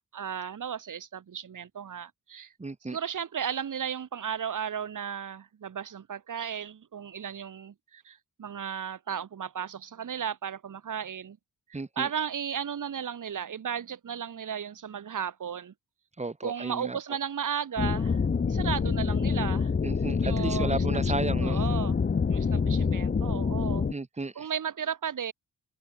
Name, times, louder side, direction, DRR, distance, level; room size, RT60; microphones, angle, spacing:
voice 1, 0.1-2.5 2.9-11.4 11.7-15.7 16.4-18.2 18.5-19.7 20.2-20.8 21.4-22.0 22.3-23.9 24.3-25.3, right 8 dB, 60° right, 8.0 m, -35 dB
voice 2, 2.6-3.0 11.7-12.1 16.2-17.0 19.8-21.6 23.9-24.5, right 3 dB, 20° right, 5.8 m, -33 dB
sound 1, 17.8-23.9, left 5 dB, 30° left, 1.1 m, -26 dB
wide cardioid pair, 160°, 35 cm